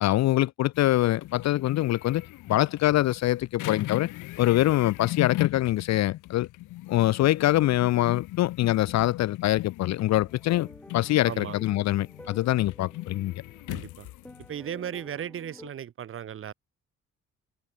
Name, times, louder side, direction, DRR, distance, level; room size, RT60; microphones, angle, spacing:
voice 1, 0.0-4.1 4.4-6.5 6.9-10.7 10.9-13.3, left 15 dB, 60° left, 0.5 m, -24 dB
sound 1, 0.7-14.5, left 18 dB, 90° left, 0.8 m, -38 dB
sound 2, 10.1-15.7, left 1 dB, 5° left, 1.8 m, -51 dB
voice 2, 11.3-11.6 13.7-14.1 14.5-16.5, right 9 dB, 45° right, 0.8 m, -36 dB
cardioid pair, 90°, 30 cm